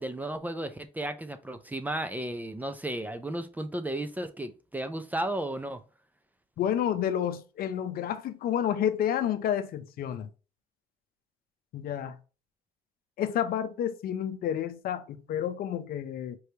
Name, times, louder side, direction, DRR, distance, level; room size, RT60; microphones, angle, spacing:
voice 1, 0.0-5.8, right 1 dB, 10° right, 0.5 m, -34 dB
voice 2, 6.6-10.3 11.7-12.2 13.2-16.4, left 10 dB, 60° left, 0.7 m, -30 dB
4.5 x 3.3 x 2.8 m
cardioid pair, 110°, 17 cm